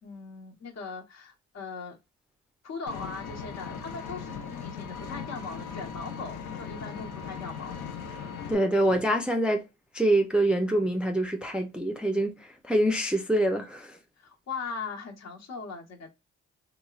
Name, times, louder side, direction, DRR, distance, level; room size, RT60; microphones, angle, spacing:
voice 1, 0.0-2.0 2.6-7.7 14.2-16.1, left 4 dB, 60° left, 1.0 m, -39 dB
Vehicle, 2.9-8.6, left 6 dB, 80° left, 0.7 m, -38 dB
voice 2, 8.5-9.7 9.9-14.0, right 1 dB, 5° right, 0.4 m, -25 dB
3.0 x 2.0 x 2.3 m
cardioid pair, 90°, 30 cm